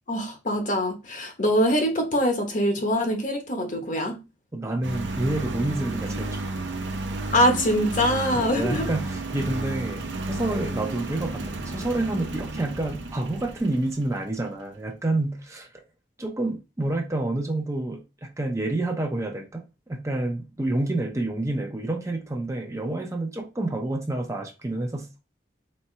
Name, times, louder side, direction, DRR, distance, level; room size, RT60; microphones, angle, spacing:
voice 1, 0.1-4.2 7.3-8.8, equal, 45° left, 1.1 m, -23 dB
voice 2, 4.5-6.6 8.3-15.7 16.2-25.1, right 2 dB, 15° right, 0.7 m, -28 dB
Engine, 4.8-14.3, right 2 dB, 85° right, 0.7 m, -32 dB
4.3 x 3.5 x 3.3 m
head